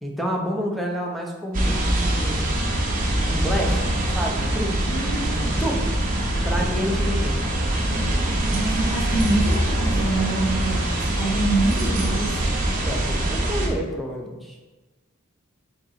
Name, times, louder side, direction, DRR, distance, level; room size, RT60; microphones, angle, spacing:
voice 1, 0.0-2.5 3.3-4.7 5.2-5.8 6.4-7.4 7.9-8.0 12.7-14.6, equal, ahead, -1 dB, 0.4 m, -29 dB
sound 1, 1.5-13.7, right 1 dB, 40° right, 0.7 m, -23 dB
voice 2, 4.9-5.4 7.9-12.4, right 2 dB, 55° left, -3 dB, 0.7 m, -26 dB
3.7 x 2.9 x 4.0 m, 1.2 s
head